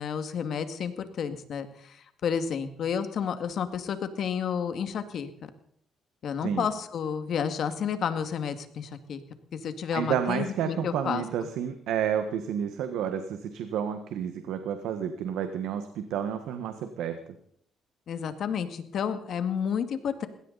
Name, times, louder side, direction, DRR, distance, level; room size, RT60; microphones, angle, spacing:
voice 1, 0.0-5.3 6.2-9.2 9.5-11.2 18.1-20.3, left 7 dB, 65° left, 9 dB, 2.0 m, -31 dB
voice 2, 9.9-17.2, right 9 dB, 85° right, 8 dB, 1.4 m, -30 dB
20.5 x 17.0 x 4.1 m, 0.66 s
cardioid pair, 90°, 0 cm